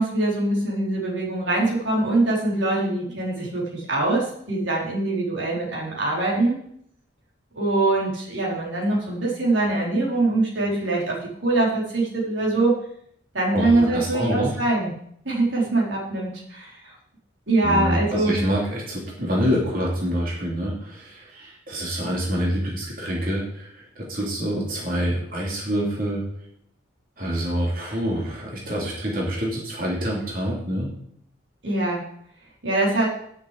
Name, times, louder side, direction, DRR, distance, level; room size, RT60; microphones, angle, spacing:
voice 1, 0.0-6.6 7.5-12.7 13.3-14.9 15.2-16.9 17.5-18.4 31.6-32.0 32.6-33.1, right 2 dB, 80° right, -4 dB, 4.4 m, -23 dB
voice 2, 13.5-14.6 17.6-26.2 27.2-30.9, equal, 50° right, -4 dB, 3.2 m, -26 dB
8.3 x 7.1 x 8.4 m, 0.70 s
head